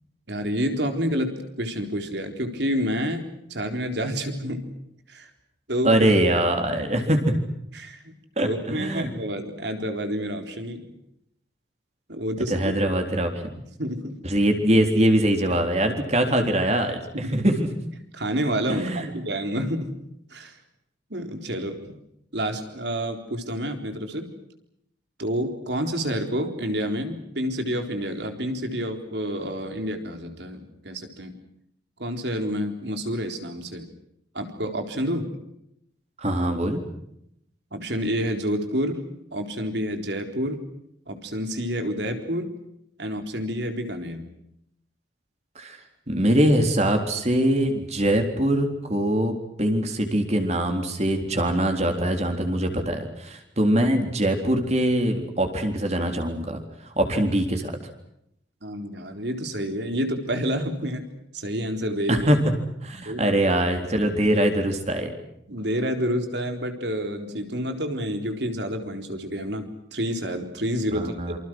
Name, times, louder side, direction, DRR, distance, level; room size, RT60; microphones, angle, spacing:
voice 1, 0.3-3.2 3.5-4.7 5.1-5.3 5.7-6.0 6.7-6.8 7.7-10.8 12.1-12.8 13.8-14.2 17.2-17.4 18.1-19.9 20.3-20.6 21.1-22.0 22.3-24.3 25.2-31.3 32.0-33.9 34.3-35.3 37.7-39.0 39.3-40.6 41.1-42.5 43.0-44.3 58.6-61.1 61.3-62.3 63.0-63.4 65.5-71.4, equal, 65° right, 5 dB, 4.1 m, -29 dB
voice 2, 5.8-7.3 8.4-9.1 12.5-13.3 14.2-17.7 18.7-19.1 36.2-36.8 45.6-45.8 46.1-57.7 62.1-62.4 62.8-65.1 70.9-71.4, right 1 dB, 35° right, 5 dB, 3.8 m, -23 dB
27.5 x 26.0 x 6.2 m, 0.77 s
head